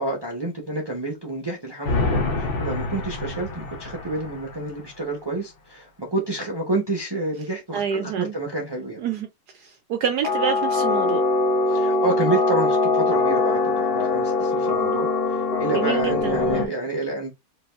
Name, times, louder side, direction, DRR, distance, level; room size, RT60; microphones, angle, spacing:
voice 1, 0.0-9.0 11.7-17.3, right 2 dB, 25° right, 0.5 m, -29 dB
sound 1, 1.9-4.8 10.2-16.7, left 3 dB, 50° left, 0.6 m, -23 dB
voice 2, 7.7-8.3 9.0-9.3 9.5-11.2 15.7-16.7, right 8 dB, 70° right, 1.0 m, -27 dB
5.0 x 3.0 x 2.4 m
omnidirectional pair, 2.2 m